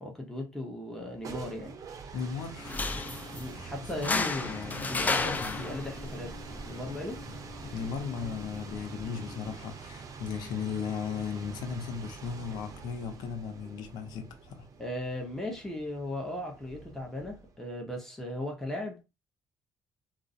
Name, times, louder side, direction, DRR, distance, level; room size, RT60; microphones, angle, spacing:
voice 1, 0.0-1.7 3.3-4.5 4.9-7.2 14.8-19.0, left 1 dB, 5° left, 0.8 m, -37 dB
sound 1, 0.9-17.7, right 5 dB, 55° right, 0.5 m, -46 dB
voice 2, 2.1-3.2 3.5-5.8 7.3-7.4 7.6-14.7, left 6 dB, 85° left, 0.5 m, -37 dB
sound 2, 2.6-9.6, left 3 dB, 25° left, 0.3 m, -35 dB
sound 3, 5.3-13.2, equal, 15° right, 1.1 m, -56 dB
2.3 x 2.0 x 2.6 m
cardioid pair, 80°, 7 cm